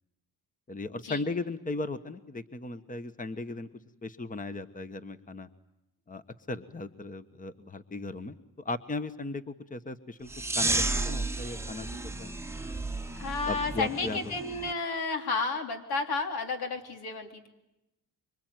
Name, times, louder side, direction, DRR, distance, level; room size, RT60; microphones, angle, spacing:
voice 1, 0.7-3.7 4.0-5.5 6.1-11.9 12.2-12.3 13.5-14.3, left 3 dB, 20° left, 11 dB, 1.2 m, -37 dB
sound 1, 10.3-14.7, right 2 dB, 5° right, 1.0 m, -32 dB
voice 2, 13.2-17.5, left 4 dB, 80° left, 5 dB, 3.5 m, -32 dB
26.0 x 24.5 x 9.3 m, 0.90 s
cardioid pair, 100°, 37 cm